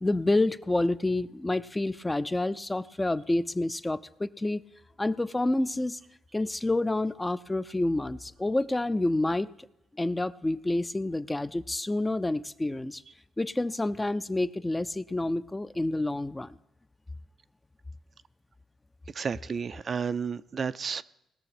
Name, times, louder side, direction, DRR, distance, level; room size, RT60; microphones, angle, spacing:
voice 1, 0.0-4.6 5.0-6.0 6.3-9.5 10.0-13.0 13.4-16.6, left 2 dB, 15° left, 14 dB, 0.4 m, -28 dB
voice 2, 19.1-21.0, right 6 dB, 45° right, 13 dB, 0.4 m, -32 dB
19.0 x 6.6 x 5.9 m, 0.86 s
cardioid pair, 90°, 0 cm